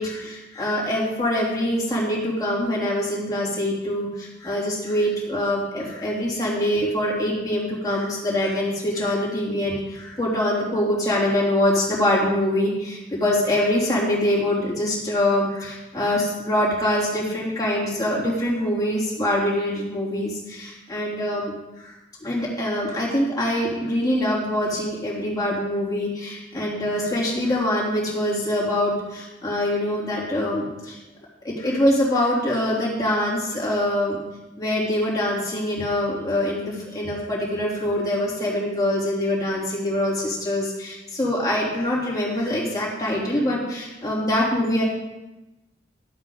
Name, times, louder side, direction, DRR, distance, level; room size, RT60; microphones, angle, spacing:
voice 1, 0.0-21.5 21.8-21.9 22.2-31.0 31.4-34.2 34.6-44.8, left 1 dB, 20° left, -6 dB, 3.2 m, -24 dB
12.5 x 7.9 x 3.9 m, 1.0 s
head